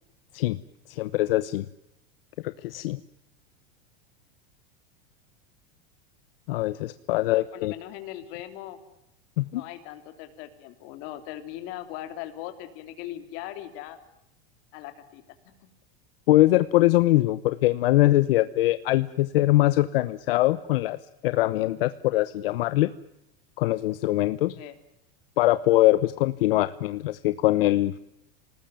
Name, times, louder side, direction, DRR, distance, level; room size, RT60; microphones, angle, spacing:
voice 1, 0.9-1.7 2.4-3.0 6.5-7.7 9.4-9.6 16.3-21.0 21.2-22.9 23.6-24.5 25.4-28.0, left 16 dB, 70° left, 13 dB, 1.0 m, -22 dB
voice 2, 7.3-8.8 9.5-14.0 14.7-15.7 24.6-24.8, left 13 dB, 45° left, 8 dB, 3.3 m, -40 dB
28.0 x 19.5 x 9.1 m, 0.88 s
supercardioid pair, 170°, 30 cm